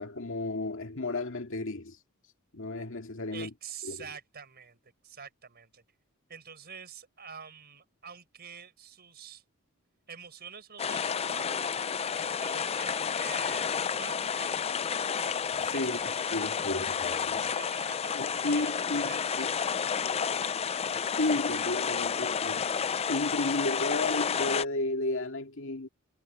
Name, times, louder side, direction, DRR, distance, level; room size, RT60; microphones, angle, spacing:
voice 1, 0.0-2.0 2.5-3.5 3.8-4.0 15.1-15.3 15.6-16.0 16.3-17.5 18.1-19.5 21.0-22.7 23.1-25.9, left 2 dB, 65° left, 2.1 m, -33 dB
voice 2, 3.3-5.8 6.3-9.4 10.1-11.7 12.3-14.7 15.7-16.4 17.3-19.6, right 7 dB, 50° right, 4.7 m, -47 dB
sound 1, 10.8-24.6, left 6 dB, 30° left, 0.4 m, -31 dB
head